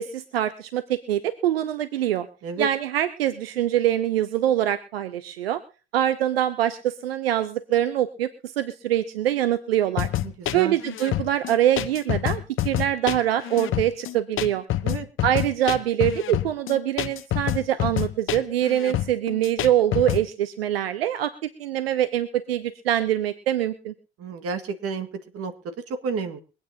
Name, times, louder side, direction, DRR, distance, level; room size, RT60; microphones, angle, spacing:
voice 1, 0.0-2.3 2.6-5.6 5.9-10.1 10.5-14.6 15.2-21.3 21.6-23.9, right 12 dB, 80° right, 12 dB, 0.8 m, -24 dB
sound 1, 10.0-20.2, left 13 dB, 45° left, 0.8 m, -27 dB
voice 2, 10.2-10.8 14.8-15.1 24.2-25.1 25.3-25.5 25.9-26.4, right 4 dB, 50° right, 7 dB, 1.9 m, -30 dB
23.5 x 9.2 x 2.8 m, 0.35 s
hypercardioid pair, 60°, 29 cm